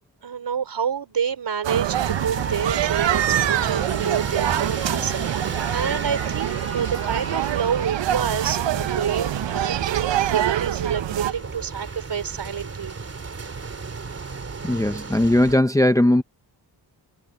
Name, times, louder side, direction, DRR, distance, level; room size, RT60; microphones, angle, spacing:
voice 1, 0.2-12.9, right 7 dB, 70° right, 4.3 m, -28 dB
sound 1, 1.6-11.3, right 12 dB, 90° right, 0.7 m, -25 dB
sound 2, 1.9-15.6, right 4 dB, 35° right, 2.9 m, -33 dB
voice 2, 14.6-16.2, left 1 dB, 10° left, 0.7 m, -18 dB
wide cardioid pair, 180°, 43 cm